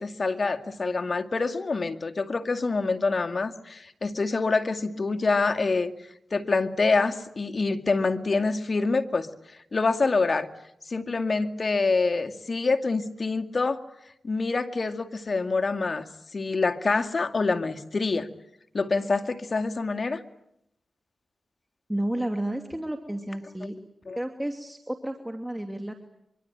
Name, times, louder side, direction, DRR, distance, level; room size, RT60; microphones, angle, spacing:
voice 1, 0.0-5.9 6.3-9.3 9.7-10.5 10.9-13.8 14.2-16.1 16.3-18.3 18.7-20.2 24.1-24.2, left 3 dB, 55° left, 7 dB, 2.2 m, -26 dB
voice 2, 21.9-23.8 24.2-25.9, right 1 dB, 10° right, 5 dB, 2.6 m, -31 dB
24.5 x 24.5 x 9.1 m, 0.76 s
cardioid pair, 50°, 0 cm